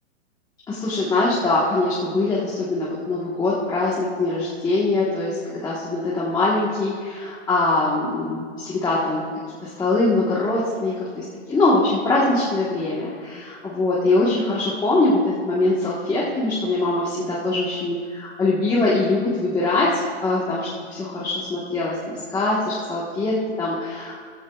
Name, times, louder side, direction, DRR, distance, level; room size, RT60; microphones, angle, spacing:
voice 1, 0.7-9.2 9.6-24.2, left 2 dB, 10° left, -6 dB, 1.3 m, -23 dB
15.0 x 15.0 x 2.4 m, 2.1 s
hypercardioid pair, 150°, 35 cm